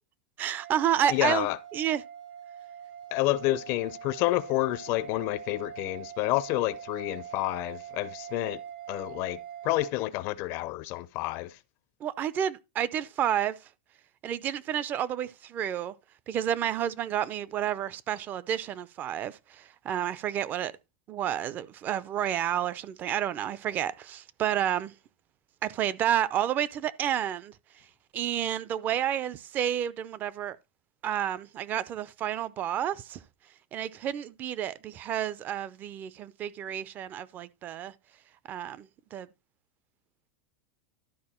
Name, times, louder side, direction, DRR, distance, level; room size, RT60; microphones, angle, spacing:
voice 1, 0.4-1.5 1.7-2.0 12.0-13.6 14.2-15.9 16.3-20.7 21.1-24.9 25.6-27.5 28.1-30.6 31.0-33.2 33.7-37.9 38.5-39.3, right 10 dB, 30° right, 0.6 m, -30 dB
sound 1, 0.6-9.9, right 9 dB, 75° right, 2.3 m, -44 dB
voice 2, 1.1-1.6 3.1-8.6 8.9-9.4 9.6-11.6, left 17 dB, 45° left, 0.5 m, -29 dB
12.0 x 4.7 x 4.4 m
supercardioid pair, 135°, 6 cm